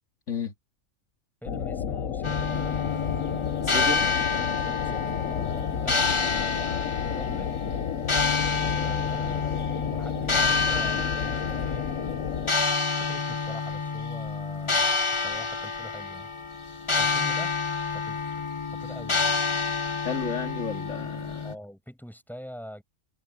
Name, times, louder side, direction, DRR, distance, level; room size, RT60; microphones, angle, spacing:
sound 1, 1.4-12.5, left 8 dB, 85° left, 1.3 m, -31 dB
voice 1, 1.4-2.7 4.8-7.5 8.6-9.6 9.8-11.9 12.9-14.9 15.2-16.3 17.0-17.5 17.9-18.2 18.7-19.3 21.4-22.8, equal, ahead, 7.1 m, -43 dB
sound 2, 2.2-21.5, left 4 dB, 25° left, 1.0 m, -28 dB
voice 2, 3.6-4.1 20.0-21.5, left 5 dB, 70° left, 2.6 m, -32 dB
omnidirectional pair, 1.3 m